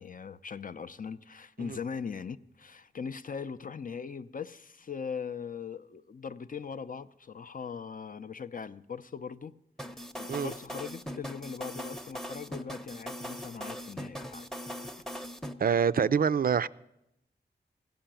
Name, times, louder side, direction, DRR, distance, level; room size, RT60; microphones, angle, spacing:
voice 1, 0.0-9.6 9.9-14.5 14.8-14.9, left 6 dB, 45° left, 0.5 m, -40 dB
sound 1, 9.8-15.5, equal, ahead, 0.7 m, -40 dB
voice 2, 15.6-16.7, right 7 dB, 50° right, 0.4 m, -25 dB
16.0 x 5.7 x 8.9 m
cardioid pair, 40°, 19 cm